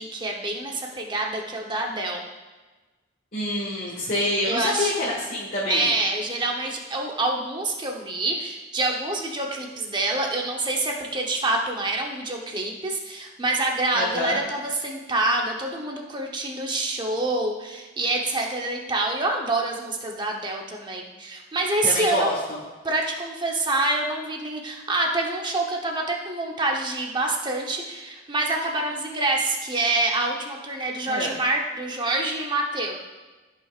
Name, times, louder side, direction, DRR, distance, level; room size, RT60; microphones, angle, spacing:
voice 1, 0.0-2.2 4.4-5.1 5.7-22.3 22.8-33.0, right 2 dB, 25° right, 1 dB, 1.0 m, -26 dB
voice 2, 3.3-5.9 13.9-14.4 21.8-22.3 31.1-31.3, left 1 dB, 45° left, -6 dB, 1.6 m, -26 dB
14.0 x 5.7 x 2.5 m, 1.2 s
head